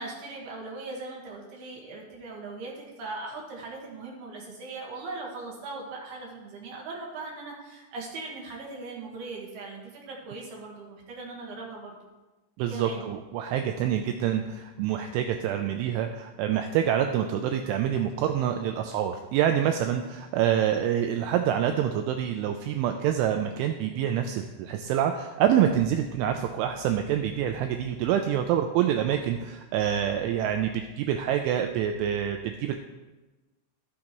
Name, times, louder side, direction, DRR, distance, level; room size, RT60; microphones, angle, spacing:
voice 1, 0.0-12.0 12.7-13.0, right 3 dB, 65° right, -2 dB, 2.9 m, -39 dB
voice 2, 12.6-32.8, right 10 dB, 85° right, 5 dB, 2.7 m, -26 dB
17.0 x 6.4 x 3.0 m, 1.1 s
omnidirectional pair, 6.0 m